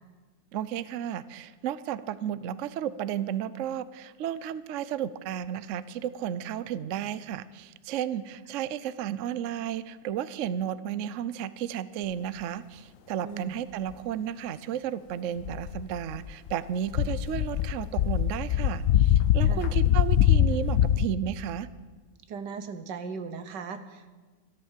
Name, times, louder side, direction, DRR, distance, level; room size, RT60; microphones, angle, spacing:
voice 1, 0.5-21.7, right 10 dB, 65° right, 16 dB, 0.8 m, -33 dB
voice 2, 13.2-13.6 19.5-19.8 22.3-24.1, right 5 dB, 80° right, 10 dB, 1.7 m, -38 dB
sound 1, 15.4-16.5 16.9-21.1, left 10 dB, 65° left, 0.8 m, -23 dB
13.5 x 13.0 x 7.4 m, 1.3 s
omnidirectional pair, 1.8 m